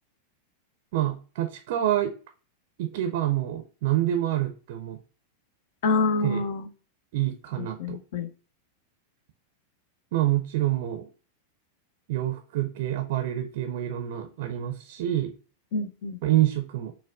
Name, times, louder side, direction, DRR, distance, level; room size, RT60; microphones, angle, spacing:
voice 1, 0.9-2.1 2.8-5.0 6.2-6.4 7.1-8.0 10.1-11.1 12.1-15.3 16.2-16.9, right 13 dB, 50° right, 5 dB, 0.5 m, -27 dB
voice 2, 5.8-6.7 7.6-8.3 15.7-16.2, left 3 dB, 55° left, 11 dB, 0.5 m, -27 dB
5.7 x 2.2 x 2.4 m, 0.37 s
figure-of-eight pair, 90°, 0 cm